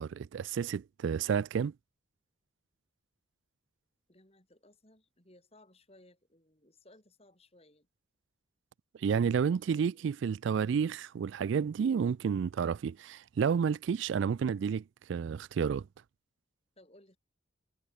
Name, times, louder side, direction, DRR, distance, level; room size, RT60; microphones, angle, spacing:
voice 1, 0.0-1.7 9.0-15.9, right 6 dB, 70° right, 0.3 m, -30 dB
voice 2, 4.1-7.9 9.5-10.2 16.8-17.2, left 1 dB, 30° left, 5.0 m, -61 dB
head